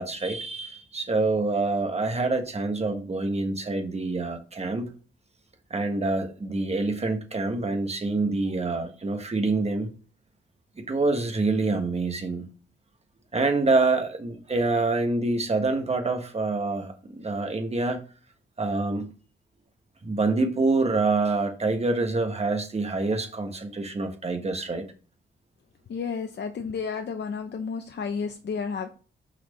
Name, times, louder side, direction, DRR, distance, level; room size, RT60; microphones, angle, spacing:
voice 1, 0.0-4.9 5.7-9.9 10.8-12.5 13.3-18.0 18.6-19.1 20.0-24.9, right 3 dB, 30° right, 1.4 m, -26 dB
voice 2, 25.9-28.9, left 5 dB, 60° left, 0.7 m, -31 dB
6.0 x 4.4 x 5.3 m
wide cardioid pair, 105°, 20 cm